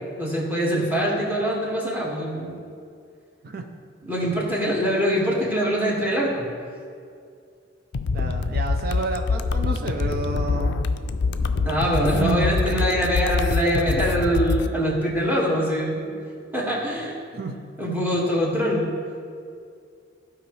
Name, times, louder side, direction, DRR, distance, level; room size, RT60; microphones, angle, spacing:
voice 1, 0.2-2.6 4.0-6.5 11.6-16.0 16.5-17.2 17.8-18.9, equal, 10° right, -5 dB, 1.8 m, -23 dB
sound 1, 7.9-14.7, left 4 dB, 65° left, 0.4 m, -25 dB
voice 2, 8.1-10.9 12.1-12.5 17.3-17.6, right 3 dB, 55° right, 4 dB, 0.6 m, -30 dB
14.5 x 5.0 x 3.2 m, 2.3 s
head